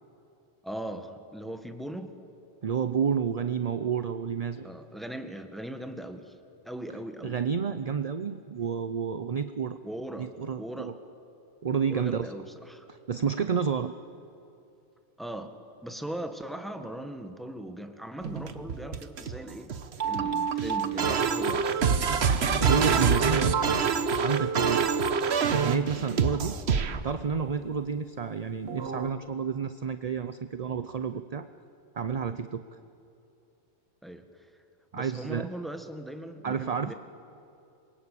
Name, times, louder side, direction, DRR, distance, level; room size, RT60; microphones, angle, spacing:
voice 1, 0.6-2.1 4.6-6.3 6.6-7.4 9.8-11.0 11.9-12.9 15.2-15.5 15.8-19.8 20.1-21.7 34.0-34.5 34.9-36.9, right 1 dB, ahead, 7 dB, 1.6 m, -39 dB
voice 2, 2.6-4.7 7.2-9.8 10.2-10.9 11.6-12.3 12.9-13.9 22.6-25.1 25.5-26.6 27.0-31.5 31.9-32.6 34.9-35.5 36.4-36.9, right 6 dB, 40° right, 11 dB, 0.7 m, -30 dB
sound 1, 18.2-27.0 28.7-29.1, right 6 dB, 70° right, 1.3 m, -26 dB
26.5 x 23.0 x 8.6 m, 2.7 s
omnidirectional pair, 1.2 m